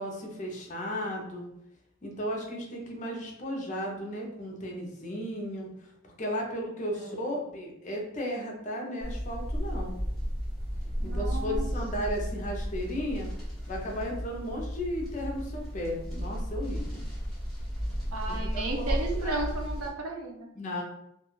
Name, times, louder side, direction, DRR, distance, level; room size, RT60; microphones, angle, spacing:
voice 1, 0.0-1.5 2.0-9.9 11.0-13.3 13.7-17.0 18.3-19.0 19.2-19.4 20.6-20.8, equal, 35° left, 0 dB, 0.5 m, -35 dB
sound 1, 9.0-19.9, equal, ahead, 0.8 m, -34 dB
voice 2, 11.0-11.6 18.1-20.5, right 3 dB, 85° right, 1 dB, 0.5 m, -34 dB
2.3 x 2.2 x 3.0 m, 0.81 s
head